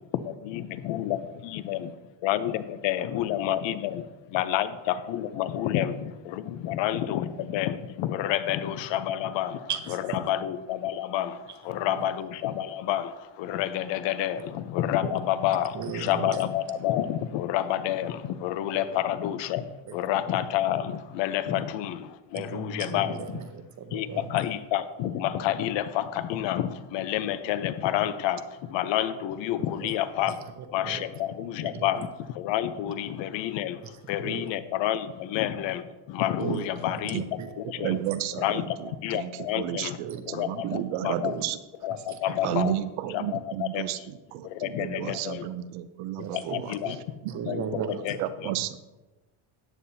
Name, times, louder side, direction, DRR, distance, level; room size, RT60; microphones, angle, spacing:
voice 1, 0.0-1.9 2.2-23.4 23.9-30.3 30.7-38.0 38.4-40.0 40.3-41.4 41.8-42.8 43.1-43.9 44.4-45.5 46.3-47.0 47.5-48.5, left 12 dB, 65° left, 12 dB, 0.9 m, -29 dB
voice 2, 9.7-10.2 11.7-12.0 15.0-15.1 15.7-16.4 18.7-19.0 19.9-20.0 21.5-21.6 22.3-24.3 29.6-30.0 30.2-31.0 31.6-32.1 33.8-34.5 36.4-38.2 40.0-40.2 40.6-40.8 41.2-41.4 41.9-42.6 46.2-47.0 47.3-48.2, right 7 dB, 35° right, 8 dB, 1.0 m, -37 dB
voice 3, 37.1-37.5 37.8-41.6 42.4-46.7 47.2-47.9 48.2-48.8, right 12 dB, 80° right, 12 dB, 0.9 m, -32 dB
14.0 x 9.3 x 2.8 m, 1.1 s
cardioid pair, 135°, 48 cm